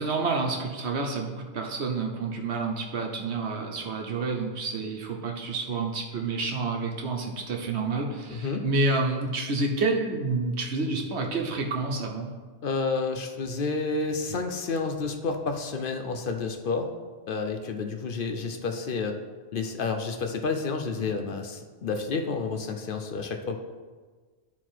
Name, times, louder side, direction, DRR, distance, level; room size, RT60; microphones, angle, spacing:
voice 1, 0.0-12.3, right 3 dB, 75° right, 2 dB, 1.3 m, -29 dB
voice 2, 8.3-8.6 12.6-16.9 17.3-19.2 19.5-23.6, left 4 dB, 55° left, 5 dB, 0.8 m, -30 dB
11.0 x 4.2 x 4.4 m, 1.4 s
omnidirectional pair, 1.1 m